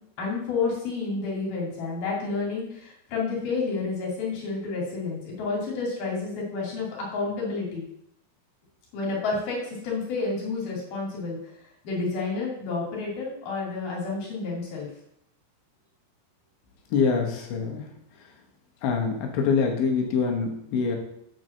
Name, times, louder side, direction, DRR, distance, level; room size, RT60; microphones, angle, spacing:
voice 1, 0.2-7.8 8.9-11.4 11.8-14.9, left 4 dB, 55° left, -3 dB, 4.1 m, -30 dB
voice 2, 16.9-17.8 18.8-21.0, left 5 dB, 75° left, 1 dB, 3.4 m, -25 dB
8.8 x 4.7 x 6.6 m, 0.75 s
omnidirectional pair, 5.4 m